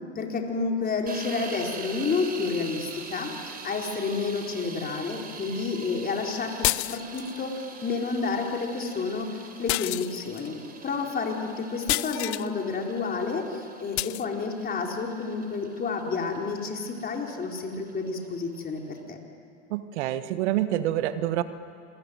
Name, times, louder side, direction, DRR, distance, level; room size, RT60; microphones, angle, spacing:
voice 1, 0.1-19.2, left 4 dB, 25° left, 1 dB, 4.5 m, -30 dB
sound 1, 1.1-19.0, right 5 dB, 25° right, 3.8 m, -44 dB
sound 2, 6.6-7.4 9.7-10.5 11.9-12.5 14.0-14.3, left 21 dB, 65° left, 0.6 m, -28 dB
voice 2, 19.7-21.4, right 13 dB, 70° right, 12 dB, 1.4 m, -27 dB
28.0 x 22.0 x 9.5 m, 2.5 s
hypercardioid pair, 100°, 36 cm